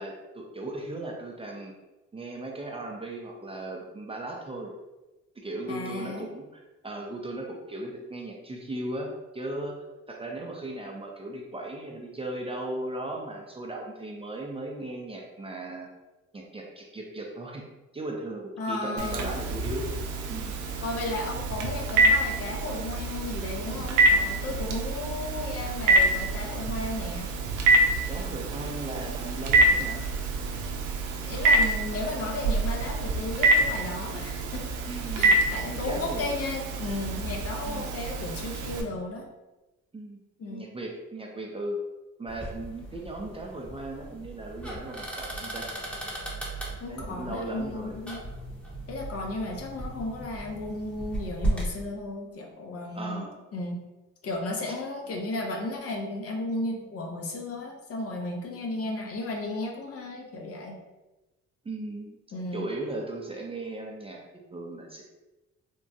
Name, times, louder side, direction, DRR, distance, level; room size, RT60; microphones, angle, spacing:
voice 1, 0.0-1.7 2.1-4.7 5.4-9.8 10.1-15.9 16.3-17.6 17.9-19.9 20.3-20.5 28.1-30.0 34.9-35.4 35.7-36.3 37.7-37.9 39.9-40.2 40.5-41.8 42.2-45.7 46.9-48.0 52.9-53.4 54.7-54.8 61.6-62.2 62.5-64.2 64.5-65.1, right 2 dB, 20° right, 0 dB, 0.4 m, -37 dB
voice 2, 5.7-6.3 18.6-19.3 20.8-27.3 31.1-34.7 35.1-39.3 40.4-40.7 46.8-48.2 48.9-53.3 53.5-53.8 54.2-60.8 62.3-62.7, left 2 dB, 50° left, 1 dB, 0.7 m, -34 dB
Telephone, 19.0-38.8, right 2 dB, 80° right, 0.5 m, -26 dB
sound 1, 42.3-51.7, right 1 dB, 5° left, 0.8 m, -36 dB
3.6 x 2.0 x 2.6 m, 1.1 s
cardioid pair, 90°, 30 cm